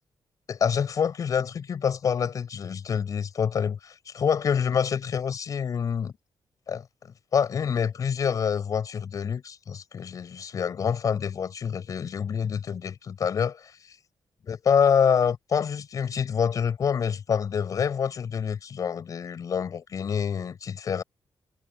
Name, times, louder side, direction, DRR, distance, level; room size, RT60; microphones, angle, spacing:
voice 1, 0.5-6.1 6.7-6.8 7.3-13.7 14.5-21.0, left 7 dB, 45° left, 7.4 m, -26 dB
wide cardioid pair, 175°, 8 cm